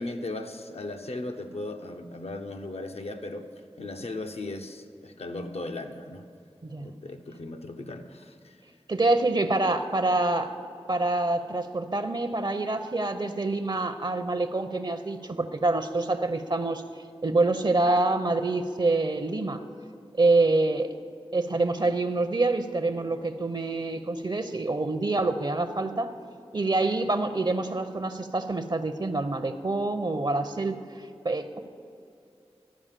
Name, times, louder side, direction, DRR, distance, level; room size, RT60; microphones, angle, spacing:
voice 1, 0.0-3.5 3.8-6.2 6.8-8.6, left 2 dB, 80° left, 5 dB, 0.7 m, -37 dB
voice 2, 8.9-10.5 10.9-16.8 17.2-19.6 20.1-20.9 21.3-26.1 26.5-30.8 31.2-31.6, right 2 dB, 45° right, 9 dB, 0.5 m, -26 dB
12.5 x 4.8 x 7.4 m, 2.6 s
wide cardioid pair, 50°, 11 cm